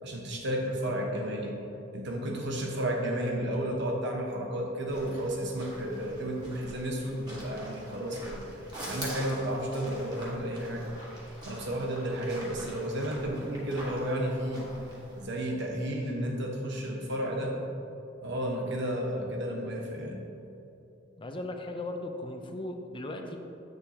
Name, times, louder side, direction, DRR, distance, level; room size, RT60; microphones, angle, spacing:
voice 1, 0.0-1.6 1.9-8.4 8.8-10.9 11.4-14.7 15.2-17.6 18.2-20.2, right 1 dB, 60° right, 0 dB, 1.1 m, -32 dB
sound 1, 4.8-15.2, right 1 dB, 20° right, 1.6 m, -44 dB
voice 2, 21.2-23.4, left 1 dB, 25° left, 4 dB, 0.6 m, -37 dB
8.2 x 6.8 x 2.8 m, 2.9 s
head